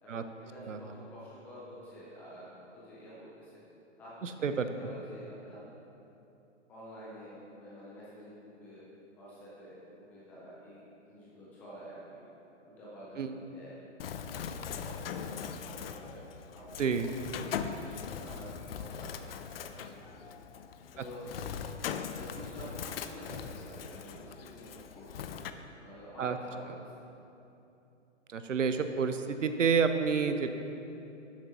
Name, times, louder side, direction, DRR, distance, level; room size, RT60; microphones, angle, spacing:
voice 1, 0.0-3.6 4.0-5.7 6.7-8.8 9.2-12.3 12.6-13.8 14.3-16.2 16.5-17.2 17.8-19.1 19.5-20.3 20.9-21.4 22.1-25.3 25.8-27.0, equal, 5° left, -8 dB, 0.3 m, -49 dB
voice 2, 4.2-4.7 13.2-13.3 16.8-17.1 26.2-26.4 28.3-30.5, right 6 dB, 85° right, 9 dB, 0.7 m, -29 dB
Bird, 14.0-25.5, left 7 dB, 55° left, 0.5 m, -40 dB
12.0 x 7.4 x 3.0 m, 2.9 s
hypercardioid pair, 130°, 37 cm